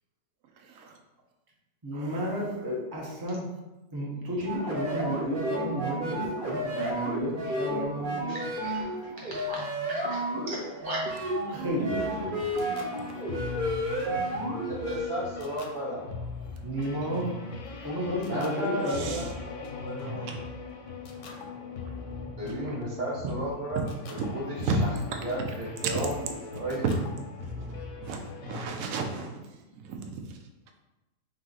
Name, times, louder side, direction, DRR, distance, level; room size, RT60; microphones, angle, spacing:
voice 1, 1.8-3.5 3.9-8.4 11.5-12.6 16.6-17.3 17.8-19.2, equal, 20° right, -4 dB, 0.6 m, -32 dB
sound 1, 4.5-15.0, right 1 dB, 40° right, 1.0 m, -32 dB
voice 2, 8.3-11.2, right 1 dB, 35° left, -5 dB, 0.4 m, -39 dB
sound 2, 11.9-28.7, left 4 dB, 65° left, 0.9 m, -40 dB
voice 3, 14.6-16.5 18.2-20.5 22.4-23.9 24.3-24.9 25.2-26.9, equal, 90° right, -8 dB, 1.8 m, -34 dB
voice 4, 18.9-19.2 20.0-20.5 21.1-22.3 23.8-23.9 24.2-24.3 24.6-24.8 25.5-25.6 25.8-25.9 27.4-29.4 29.8-30.4, right 5 dB, 70° right, 4 dB, 1.0 m, -35 dB
3.8 x 3.1 x 3.9 m, 1.0 s
omnidirectional pair, 1.6 m